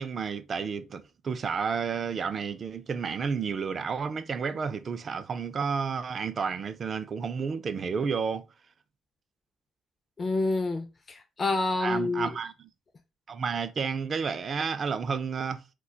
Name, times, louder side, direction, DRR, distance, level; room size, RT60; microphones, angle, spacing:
voice 1, 0.0-8.4 11.8-12.5 13.3-15.6, right 5 dB, 45° right, 0.3 m, -31 dB
voice 2, 10.2-12.3, left 3 dB, 35° left, 0.4 m, -28 dB
2.2 x 2.2 x 3.7 m
cardioid pair, 90°, 0 cm